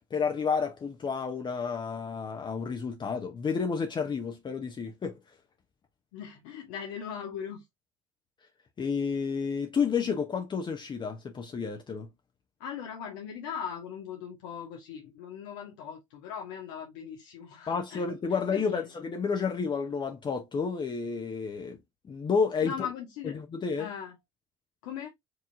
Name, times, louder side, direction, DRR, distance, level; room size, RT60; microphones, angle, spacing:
voice 1, 0.1-5.2 8.8-12.1 17.7-21.8 22.0-22.7 23.3-23.9, left 5 dB, 30° left, 0.8 m, -30 dB
voice 2, 6.1-7.6 12.6-18.0 18.3-18.8 22.6-23.4 23.7-24.2 24.8-25.1, left 8 dB, 70° left, 0.8 m, -39 dB
4.7 x 2.9 x 2.5 m
hypercardioid pair, 65°, 15 cm